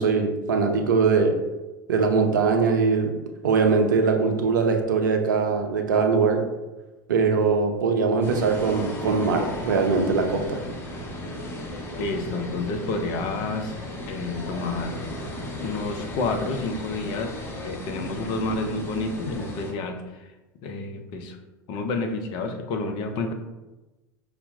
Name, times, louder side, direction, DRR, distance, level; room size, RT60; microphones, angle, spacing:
voice 1, 0.0-1.4 1.9-3.2 3.4-6.4 7.1-10.6, right 4 dB, 70° right, 4 dB, 0.5 m, -21 dB
sound 1, 8.2-19.7, left 1 dB, 20° left, 0.8 m, -35 dB
voice 2, 12.0-13.8 14.1-14.9 15.6-17.3 17.6-20.3 20.6-21.4 21.7-23.3, left 3 dB, 45° left, 5 dB, 0.5 m, -29 dB
5.5 x 2.0 x 2.6 m, 1.1 s
figure-of-eight pair, 80°, 11 cm